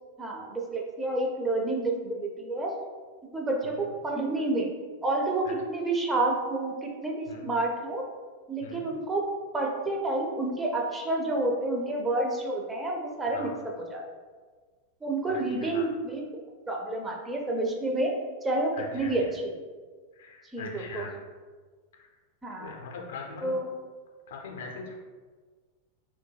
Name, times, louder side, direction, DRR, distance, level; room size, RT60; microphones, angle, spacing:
voice 1, 0.2-2.7 3.3-4.7 5.0-8.0 8.5-9.3 9.5-13.5 13.9-14.0 15.0-16.2 16.7-18.1 18.4-19.4 20.5-21.1 22.4-22.7 23.4-23.7, right 2 dB, 10° right, -1 dB, 0.4 m, -29 dB
voice 2, 15.2-15.9 18.7-19.3 20.1-21.1 21.9-22.1 22.6-23.5 24.3-24.9, left 4 dB, 60° left, 0 dB, 0.4 m, -42 dB
2.1 x 2.1 x 3.1 m, 1.5 s
figure-of-eight pair, 90°, 0 cm